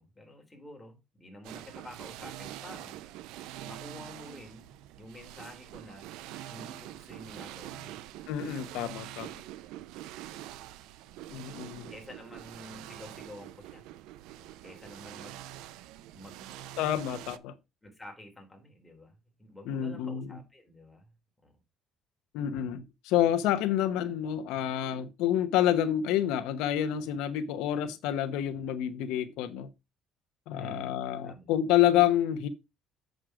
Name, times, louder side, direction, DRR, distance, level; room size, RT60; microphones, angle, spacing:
voice 1, 0.0-3.0 3.6-4.7 5.0-6.1 6.5-8.0 8.6-8.9 10.3-10.4 11.9-13.8 14.3-15.4 16.1-16.5 17.8-21.1 21.4-21.6 30.6-31.0 31.2-31.5, left 1 dB, 10° left, 3.4 m, -49 dB
sound 1, 1.4-17.4, right 13 dB, 85° right, 0.6 m, -45 dB
voice 2, 8.3-9.3 11.3-11.9 16.8-17.5 19.7-20.3 22.3-29.7 30.5-32.5, left 11 dB, 85° left, 1.0 m, -28 dB
7.7 x 6.4 x 4.9 m
cardioid pair, 135°, 0 cm